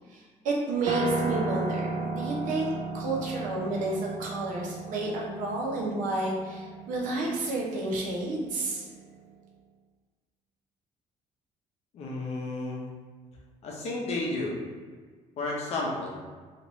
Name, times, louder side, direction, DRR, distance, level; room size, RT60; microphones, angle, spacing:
voice 1, 0.1-8.9, right 2 dB, 80° right, -3 dB, 0.8 m, -31 dB
Piano, 0.9-9.1, right 3 dB, 50° right, 0.5 m, -35 dB
voice 2, 11.9-12.8 13.6-14.6 15.4-16.2, left 2 dB, 55° left, -2 dB, 0.7 m, -32 dB
3.0 x 2.5 x 3.0 m, 1.5 s
cardioid pair, 170°, 13 cm